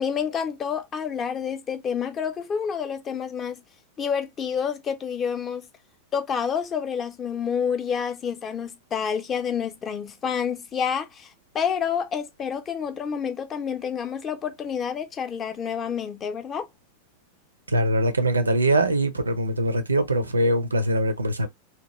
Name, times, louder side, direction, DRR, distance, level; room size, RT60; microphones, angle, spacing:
voice 1, 0.0-3.6 4.0-5.7 6.1-11.3 11.5-16.7, left 7 dB, 25° left, 0.5 m, -28 dB
voice 2, 17.7-21.5, right 1 dB, 80° right, 0.5 m, -22 dB
2.8 x 2.3 x 3.0 m
figure-of-eight pair, 90°, 0 cm